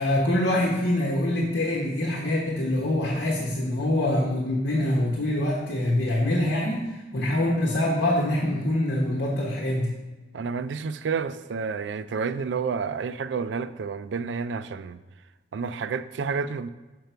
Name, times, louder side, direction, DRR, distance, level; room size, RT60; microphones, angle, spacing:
voice 1, 0.0-9.9, left 1 dB, 85° left, 1.2 m, -25 dB
voice 2, 10.3-15.0 15.5-16.7, right 5 dB, 90° right, 0.4 m, -30 dB
6.6 x 5.2 x 4.5 m
head